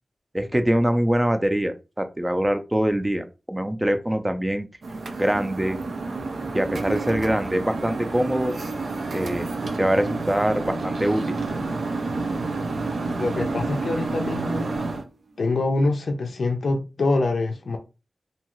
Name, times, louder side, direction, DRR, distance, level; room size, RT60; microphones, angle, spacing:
voice 1, 0.3-4.7 5.2-5.8 6.5-8.5 9.1-9.5 9.8-11.2, right 1 dB, 15° right, 0.4 m, -23 dB
sound 1, 4.8-15.0, right 3 dB, 85° right, 0.4 m, -29 dB
voice 2, 13.2-14.7 15.4-17.8, left 2 dB, 85° left, 0.4 m, -25 dB
2.7 x 2.4 x 2.9 m
wide cardioid pair, 85°, 0 cm